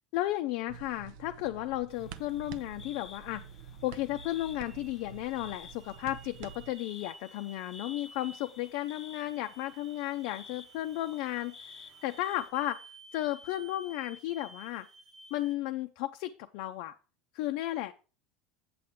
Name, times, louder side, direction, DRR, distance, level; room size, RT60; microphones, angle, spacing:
voice 1, 0.1-3.4 3.8-12.8 13.1-14.9 15.3-16.9 17.3-17.9, left 15 dB, 70° left, 6 dB, 0.5 m, -34 dB
sound 1, 0.7-6.7, right 8 dB, 70° right, 0.6 m, -48 dB
sound 2, 1.9-12.5, left 6 dB, 30° left, 0.8 m, -53 dB
sound 3, 3.8-15.5, right 2 dB, 40° right, 1.2 m, -54 dB
7.8 x 7.6 x 3.7 m, 0.35 s
supercardioid pair, 110°, 0 cm